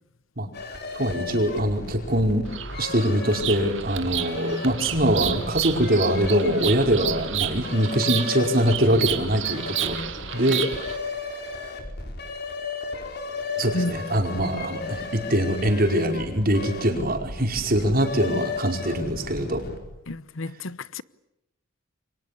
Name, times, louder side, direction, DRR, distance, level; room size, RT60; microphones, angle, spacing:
sound 1, 0.5-20.0, left 3 dB, 50° left, 4.9 m, -35 dB
voice 1, 0.9-2.5 2.8-10.0 10.3-10.7 11.0-11.2 13.6-19.6, equal, 45° right, 5.0 m, -23 dB
Bird vocalization bird call bird song, 2.5-11.0, right 11 dB, 65° right, 2.2 m, -31 dB
voice 2, 20.1-21.0, left 2 dB, 75° left, 1.0 m, -30 dB
29.0 x 24.5 x 8.6 m
head